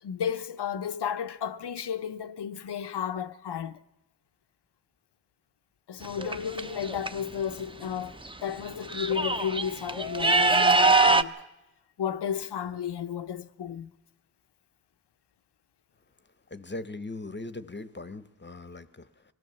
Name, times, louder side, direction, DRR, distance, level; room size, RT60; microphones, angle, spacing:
voice 1, 0.0-3.8 5.9-11.3 12.0-13.9, left 8 dB, 90° left, 0.7 m, -33 dB
sound 1, 6.0-7.1 8.2-8.3 8.7-11.2, right 3 dB, 15° right, 0.6 m, -23 dB
voice 2, 16.5-19.3, left 2 dB, 30° left, 0.8 m, -40 dB
23.5 x 17.0 x 6.8 m
wide cardioid pair, 75°, 39 cm